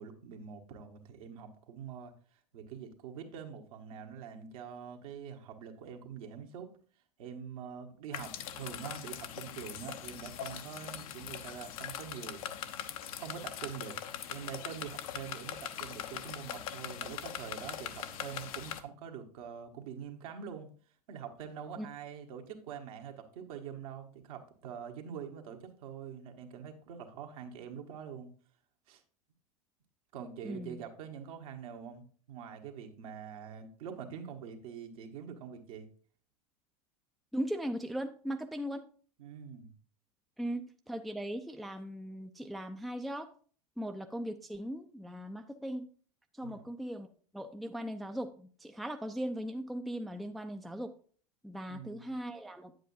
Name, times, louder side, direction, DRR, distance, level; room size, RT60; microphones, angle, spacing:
voice 1, 0.0-2.1 2.5-6.7 7.2-12.4 13.1-14.0 14.2-20.7 21.1-28.3 28.9-29.0 30.1-35.9 39.2-39.7 46.4-46.7 51.7-52.1, right 7 dB, 60° right, 4 dB, 1.4 m, -45 dB
sound 1, 8.1-18.8, left 10 dB, 60° left, 0.8 m, -41 dB
voice 2, 30.4-30.8 37.3-38.8 40.4-43.3 43.8-45.8 46.4-47.1 47.3-50.9 51.4-52.7, equal, ahead, 6 dB, 0.5 m, -38 dB
9.1 x 7.8 x 2.7 m, 0.43 s
hypercardioid pair, 90°, 20 cm